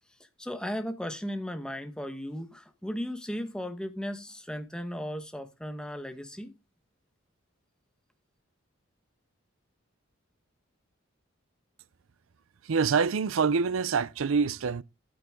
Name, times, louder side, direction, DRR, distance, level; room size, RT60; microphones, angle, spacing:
voice 1, 0.4-6.5, equal, 5° left, 1.2 m, -36 dB
voice 2, 12.6-14.8, right 5 dB, 80° right, 0.5 m, -26 dB
10.0 x 9.4 x 3.6 m
head